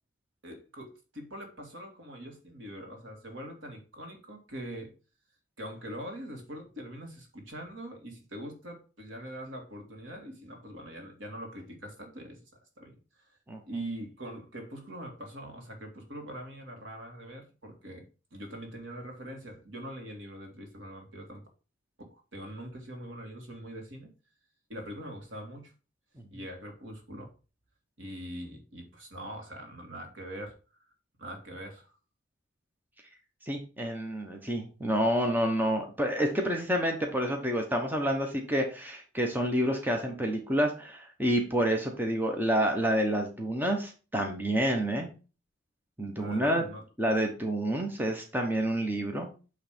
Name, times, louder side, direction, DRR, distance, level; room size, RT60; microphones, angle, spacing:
voice 1, 0.4-4.9 5.6-12.4 12.8-13.0 13.3-13.4 13.7-18.0 18.3-21.4 22.0-24.1 24.7-25.7 26.3-27.3 28.0-30.6 31.2-31.9 46.2-46.8, right 1 dB, 65° right, 3 dB, 2.0 m, -43 dB
voice 2, 33.4-45.1 46.0-46.6 47.0-49.3, equal, 10° right, 3 dB, 0.9 m, -28 dB
8.7 x 3.3 x 5.1 m, 0.34 s
head